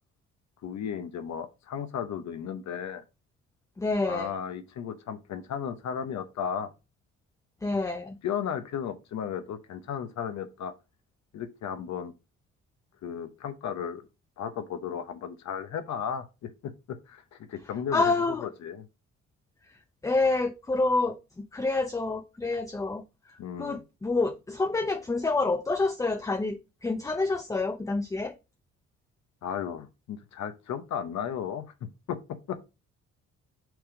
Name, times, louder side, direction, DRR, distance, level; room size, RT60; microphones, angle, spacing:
voice 1, 0.6-3.0 4.1-6.7 7.7-7.8 8.2-10.7 11.3-12.1 13.0-14.0 14.4-18.8 23.4-23.8 29.4-31.6 32.1-32.2 32.5-32.6, left 8 dB, 65° left, 0.8 m, -35 dB
voice 2, 3.8-4.3 7.6-8.2 17.9-18.4 20.0-21.2 21.5-23.0 23.6-28.3, left 3 dB, 10° left, 0.6 m, -27 dB
6.2 x 3.5 x 4.7 m
cardioid pair, 90°, 30 cm